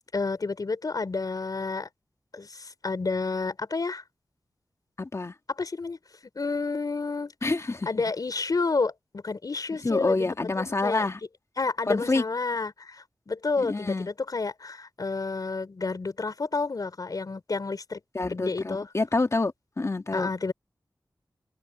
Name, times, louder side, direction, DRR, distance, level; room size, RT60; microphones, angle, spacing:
voice 1, 0.1-1.9 2.3-4.0 5.5-6.0 6.3-7.3 7.9-10.2 10.6-11.1 11.6-18.0 18.3-18.9 20.1-20.5, left 3 dB, 60° left, 4.9 m, -30 dB
voice 2, 5.0-5.3 7.4-7.9 9.8-11.2 11.9-12.2 13.6-14.1 18.1-20.3, left 3 dB, 45° left, 2.5 m, -27 dB
open air
wide cardioid pair, 70°, 7 cm